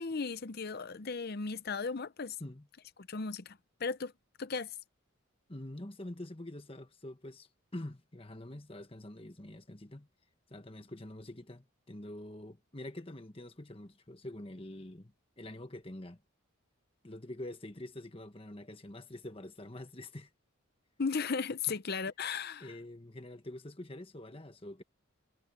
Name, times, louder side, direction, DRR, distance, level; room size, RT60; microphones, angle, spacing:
voice 1, 0.0-2.4 3.1-4.1 4.4-4.7 21.0-22.7, left 5 dB, 45° left, 0.7 m, -36 dB
voice 2, 5.5-10.1 10.5-16.2 17.0-20.3 21.7-21.8 22.6-24.8, left 1 dB, 25° left, 1.4 m, -46 dB
head